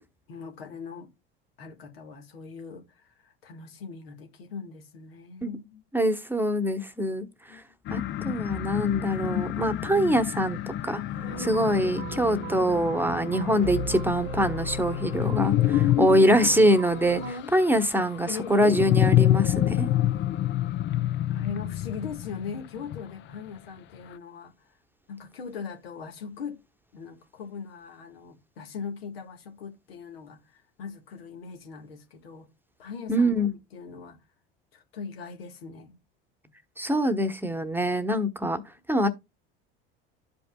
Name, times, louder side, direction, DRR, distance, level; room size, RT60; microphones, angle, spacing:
voice 1, 0.3-1.1 1.6-5.8 7.5-8.0 11.3-11.6 16.0-16.2 17.1-17.5 18.2-18.7 21.3-24.5 25.1-26.6 26.9-32.5 32.8-33.3 33.7-34.2 34.7-36.0, left 5 dB, 85° left, 1.7 m, -40 dB
voice 2, 5.9-7.6 7.9-11.0 11.5-17.2 17.5-19.9 33.1-33.5 36.8-38.6 38.9-39.1, equal, 5° right, 1.0 m, -24 dB
sound 1, 7.9-23.4, left 13 dB, 40° left, 0.5 m, -28 dB
sound 2, 11.1-17.3, equal, 90° right, 1.3 m, -36 dB
12.5 x 5.2 x 2.3 m
hypercardioid pair, 80°, 29 cm